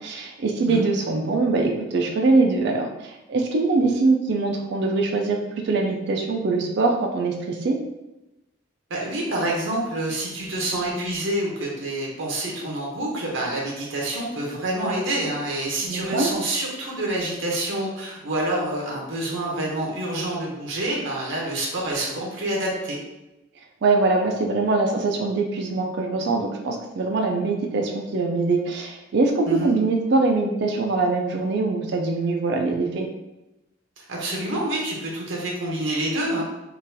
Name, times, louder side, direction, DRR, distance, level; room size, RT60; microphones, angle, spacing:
voice 1, 0.0-7.8 15.8-16.3 23.8-33.1, right 3 dB, 60° right, 2 dB, 0.4 m, -23 dB
voice 2, 8.9-23.0 29.5-29.7 34.1-36.4, right 1 dB, 80° right, -3 dB, 0.8 m, -27 dB
3.8 x 2.4 x 2.7 m, 0.96 s
head